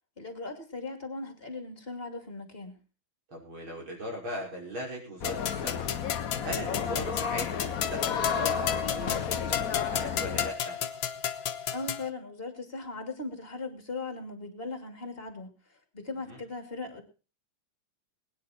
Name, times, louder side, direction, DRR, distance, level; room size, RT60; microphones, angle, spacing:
voice 1, 0.2-2.8 11.7-15.5 15.9-17.0, left 3 dB, 30° left, 6 dB, 2.7 m, -38 dB
voice 2, 3.3-5.8 6.4-10.8 16.3-16.4, equal, 80° right, -1 dB, 6.2 m, -39 dB
sound 1, 5.2-12.1, left 8 dB, 75° left, 1.7 m, -33 dB
sound 2, 5.2-10.5, left 7 dB, 55° left, 1.2 m, -33 dB
21.5 x 9.9 x 4.3 m, 0.35 s
omnidirectional pair, 2.2 m